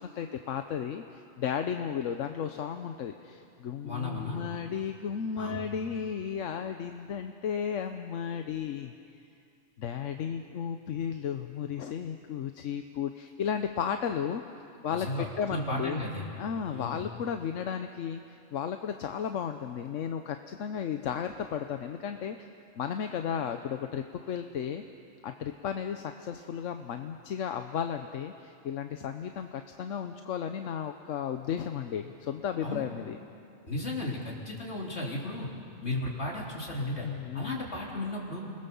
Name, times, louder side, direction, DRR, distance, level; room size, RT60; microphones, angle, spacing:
voice 1, 0.0-8.9 9.8-14.4 14.8-16.0 16.4-22.5 22.8-24.8 25.2-33.2 37.0-37.6, left 8 dB, 85° left, 7 dB, 1.2 m, -34 dB
voice 2, 3.8-4.4 5.4-5.6 14.9-16.2 16.7-17.0 32.6-32.8 33.7-35.5 35.8-37.1 37.3-38.4, left 1 dB, 60° left, -3 dB, 3.9 m, -34 dB
29.0 x 20.0 x 7.0 m, 2.5 s
omnidirectional pair, 1.3 m